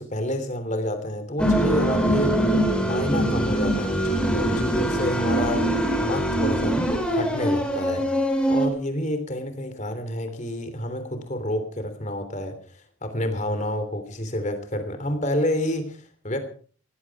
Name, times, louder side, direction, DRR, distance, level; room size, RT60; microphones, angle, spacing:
voice 1, 0.0-2.4 2.8-5.7 6.0-6.8 7.1-8.1 8.5-16.4, left 1 dB, 35° left, 8 dB, 3.2 m, -29 dB
sound 1, 1.4-8.7, right 1 dB, 5° left, 3.1 m, -23 dB
18.5 x 16.0 x 4.8 m, 0.43 s
head